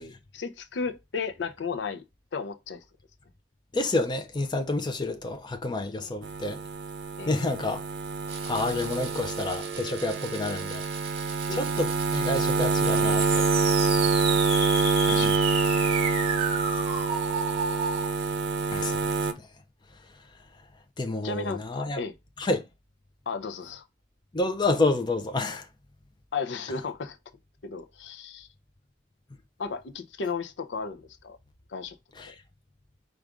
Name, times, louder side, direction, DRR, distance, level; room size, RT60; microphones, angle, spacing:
voice 1, 0.0-2.0 2.3-2.8 6.0-6.1 7.2-7.3 11.5-11.8 14.6-15.4 17.3-17.4 21.2-22.1 23.3-23.8 26.3-27.2 27.6-28.5 29.6-31.4 31.7-32.3, left 5 dB, 75° left, 0.5 m, -35 dB
voice 2, 3.7-6.6 7.3-7.9 8.5-10.8 11.5-13.4 15.1-15.3 18.7-19.5 21.0-22.0 22.4-22.6 24.3-25.7 32.2-32.3, left 2 dB, 25° left, 0.6 m, -29 dB
sound 1, 6.2-19.3, right 4 dB, 65° right, 0.5 m, -26 dB
sound 2, 8.3-18.1, right 4 dB, 35° right, 1.0 m, -34 dB
4.8 x 2.4 x 3.5 m
head